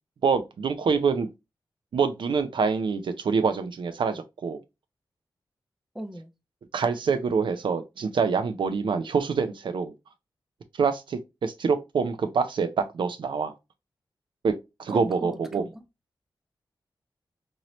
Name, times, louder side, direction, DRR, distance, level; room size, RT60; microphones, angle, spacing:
voice 1, 0.2-1.3 1.9-4.6 6.7-9.9 10.8-13.5 14.4-14.5 14.8-15.6, right 5 dB, 70° right, 0.4 m, -26 dB
voice 2, 5.9-6.3 14.9-15.8, equal, 5° right, 0.4 m, -38 dB
3.0 x 2.7 x 2.9 m
wide cardioid pair, 115°, 9 cm